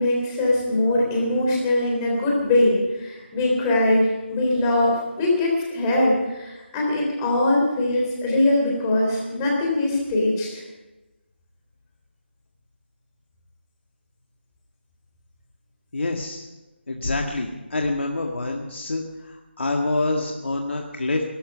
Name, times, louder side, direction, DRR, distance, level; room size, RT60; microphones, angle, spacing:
voice 1, 0.0-10.6, left 1 dB, 15° left, -2 dB, 3.6 m, -22 dB
voice 2, 15.9-16.5 16.9-21.2, left 2 dB, 70° left, 1 dB, 1.8 m, -26 dB
19.0 x 13.0 x 5.6 m, 1.1 s
figure-of-eight pair, 165°, 6 cm